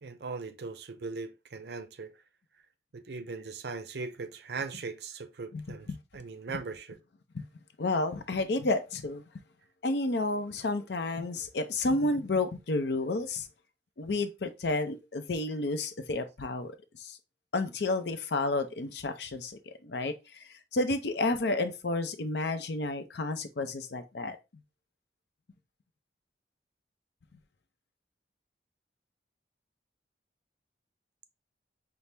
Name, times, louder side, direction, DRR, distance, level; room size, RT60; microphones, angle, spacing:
voice 1, 0.0-2.1 2.9-7.0, right 4 dB, 60° right, 0.5 m, -39 dB
voice 2, 7.8-9.2 9.8-13.5 14.0-16.7 17.0-17.2 17.5-20.1 20.7-24.4, left 2 dB, 65° left, 0.6 m, -31 dB
5.7 x 2.1 x 3.3 m
head